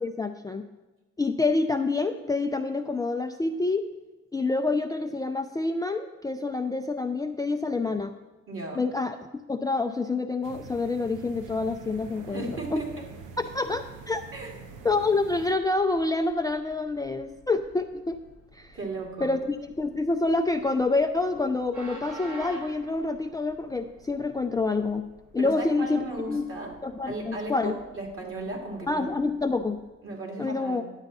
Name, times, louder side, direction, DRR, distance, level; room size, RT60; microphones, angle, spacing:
voice 1, 0.0-0.6 1.2-3.8 4.3-8.1 8.8-9.2 9.5-12.4 12.7-12.8 13.4-14.2 14.8-18.2 18.5-18.8 19.2-19.4 19.8-25.0 25.3-26.5 26.8-27.7 28.9-29.8 30.4-30.8, left 3 dB, 15° left, 6 dB, 0.4 m, -27 dB
voice 2, 8.5-8.9 12.3-13.1 14.3-14.6 18.7-19.4 25.4-26.8 27.1-29.1 30.0-30.8, right 2 dB, 45° right, 1 dB, 2.5 m, -36 dB
sound 1, 10.4-15.5, right 5 dB, 90° right, 0.9 m, -45 dB
Train, 11.3-29.9, right 2 dB, 70° right, 3.3 m, -51 dB
10.5 x 8.1 x 4.1 m, 1.1 s
cardioid pair, 90°, 30 cm